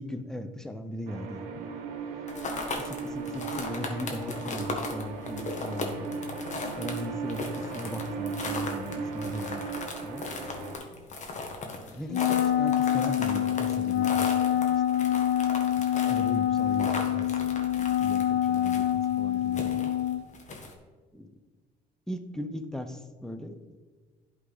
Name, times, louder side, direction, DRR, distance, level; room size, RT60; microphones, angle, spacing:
voice 1, 0.0-1.7 2.8-6.3 6.8-9.7 10.0-10.3 11.9-14.3 14.5-17.3 17.6-19.9 21.1-21.4 22.1-23.8, equal, 5° left, 7 dB, 0.7 m, -38 dB
sound 1, 1.1-10.8, right 4 dB, 90° right, 0.9 m, -37 dB
sound 2, 2.3-20.7, left 3 dB, 40° left, 1.4 m, -37 dB
Wind instrument woodwind instrument, 12.1-20.2, left 11 dB, 75° left, 0.7 m, -26 dB
11.0 x 3.7 x 4.0 m, 1.4 s
supercardioid pair, 85°, 18 cm